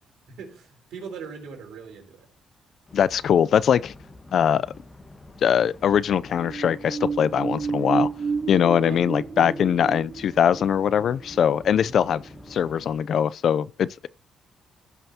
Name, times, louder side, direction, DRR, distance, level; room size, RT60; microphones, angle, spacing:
voice 1, 0.3-2.3 7.6-7.7 8.8-9.0 9.4-9.6 11.7-12.0, right 4 dB, 80° right, 3.6 m, -40 dB
voice 2, 2.9-3.9 4.3-4.7 5.4-8.1 8.5-12.2 12.5-14.1, left 8 dB, 60° left, 0.4 m, -21 dB
sound 1, 2.9-13.0, left 2 dB, 20° left, 1.3 m, -47 dB
sound 2, 6.2-12.6 12.9-13.0, right 5 dB, 45° right, 5.5 m, -31 dB
16.5 x 5.6 x 2.8 m
cardioid pair, 90°, 0 cm